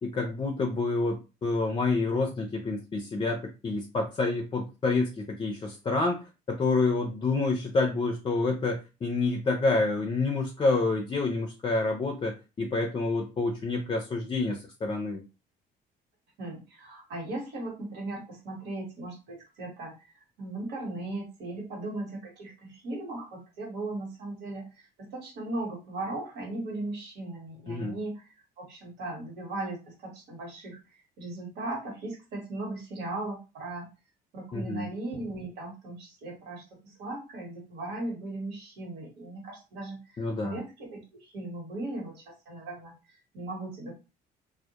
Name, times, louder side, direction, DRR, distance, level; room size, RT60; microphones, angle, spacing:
voice 1, 0.0-15.2 27.7-27.9 34.5-34.9 40.2-40.6, left 3 dB, 30° left, 3 dB, 0.4 m, -28 dB
voice 2, 16.4-33.9 34.3-43.9, right 2 dB, 85° right, 0 dB, 1.1 m, -38 dB
2.1 x 2.1 x 2.8 m, 0.29 s
cardioid pair, 110°, 17 cm